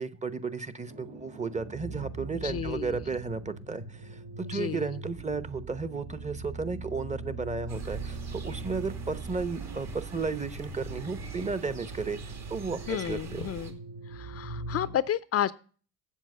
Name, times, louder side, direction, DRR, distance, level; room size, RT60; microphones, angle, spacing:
voice 1, 0.0-13.5, right 4 dB, 20° right, 14 dB, 0.9 m, -34 dB
sound 1, 0.9-15.0, right 3 dB, 70° right, 2.6 m, -41 dB
voice 2, 2.4-3.0 4.4-4.8 12.9-13.8 14.1-15.5, left 10 dB, 45° left, 17 dB, 0.5 m, -31 dB
sound 2, 7.7-13.7, right 6 dB, 50° right, 2.0 m, -43 dB
7.5 x 7.4 x 5.4 m, 0.40 s
supercardioid pair, 75°, 35 cm